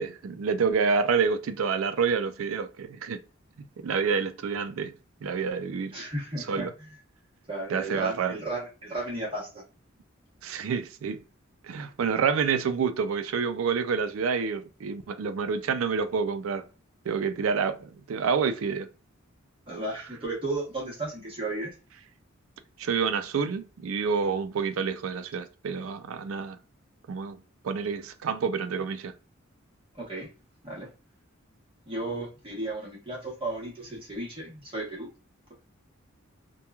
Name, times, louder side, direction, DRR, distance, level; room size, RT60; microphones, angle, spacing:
voice 1, 0.0-3.2 3.8-4.9 5.2-5.9 6.4-6.7 7.7-8.4 10.4-11.2 11.6-16.6 17.1-18.9 22.8-26.6 27.1-27.4 27.6-29.1, right 5 dB, 75° right, 0.4 m, -28 dB
voice 2, 5.9-6.7 7.5-9.6 19.7-21.7 29.9-30.3 30.6-30.9 31.9-35.1, right 2 dB, 25° right, 1.0 m, -34 dB
2.9 x 2.2 x 2.2 m
head